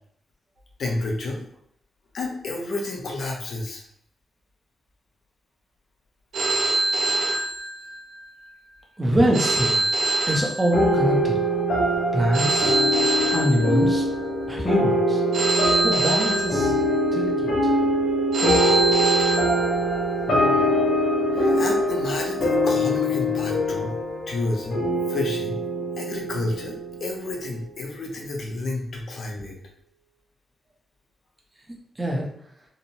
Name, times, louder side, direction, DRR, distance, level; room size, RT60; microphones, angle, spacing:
voice 1, 0.8-1.5 2.1-3.8 21.3-24.0 24.3-24.8 25.1-25.6 26.0-29.6, left 2 dB, 55° left, 0 dB, 0.6 m, -30 dB
Telephone, 6.3-8.2 9.3-11.2 12.3-14.2 15.3-17.2 18.3-20.2, right 2 dB, 65° right, 0.5 m, -25 dB
voice 2, 9.0-9.8 10.2-11.4 12.1-12.8 13.3-14.0 14.5-15.2 15.8-16.7 17.1-17.7 32.0-32.2, equal, 15° right, -2 dB, 0.5 m, -24 dB
sound 1, 10.7-27.5, equal, 90° left, 1.1 m, -23 dB
2.9 x 2.1 x 2.6 m, 0.66 s
wide cardioid pair, 160°, 0 cm